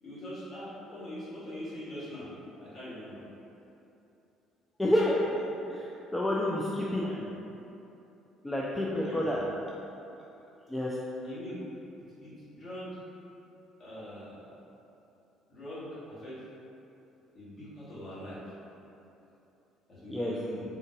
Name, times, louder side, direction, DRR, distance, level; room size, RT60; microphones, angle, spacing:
voice 1, 0.0-2.3 2.6-3.2 6.9-7.3 9.0-9.4 11.2-11.6 12.2-13.0 13.8-14.4 15.5-16.4 17.3-18.4 19.9-20.6, left 1 dB, 40° left, -11 dB, 1.5 m, -42 dB
voice 2, 4.8-5.4 5.7-7.0 8.4-9.4 10.7-10.9 20.1-20.3, left 1 dB, 10° left, -5 dB, 0.3 m, -29 dB
3.6 x 2.5 x 2.6 m, 2.9 s
figure-of-eight pair, 50°, 0 cm